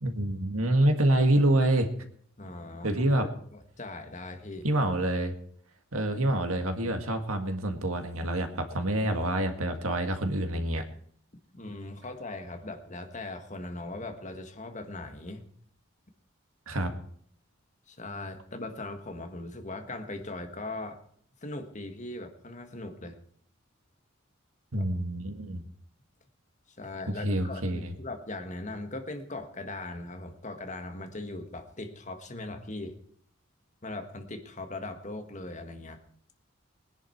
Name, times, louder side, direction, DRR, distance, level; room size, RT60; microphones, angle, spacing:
voice 1, 0.0-1.9 2.8-3.3 4.6-5.3 5.9-10.8 16.7-16.9 24.7-25.6 27.1-27.9, right 1 dB, 85° right, 6 dB, 1.9 m, -27 dB
voice 2, 2.4-4.7 11.5-15.4 17.9-21.0 21.4-23.2 24.8-24.9 26.8-33.0 33.8-36.0, left 2 dB, 35° left, 6 dB, 1.7 m, -39 dB
20.0 x 10.5 x 4.6 m, 0.62 s
head